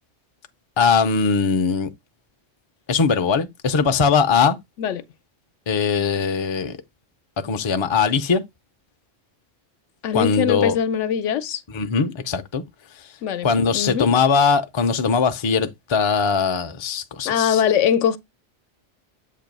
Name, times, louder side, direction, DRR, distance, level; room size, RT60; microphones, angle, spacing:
voice 1, 0.8-1.9 2.9-4.6 5.7-6.8 7.4-8.4 10.1-10.8 11.7-12.6 13.4-17.6, left 5 dB, 40° left, 0.4 m, -20 dB
voice 2, 10.0-11.6 13.2-14.1 17.2-18.2, left 8 dB, 80° left, 1.0 m, -22 dB
7.5 x 2.7 x 5.2 m
omnidirectional pair, 1.2 m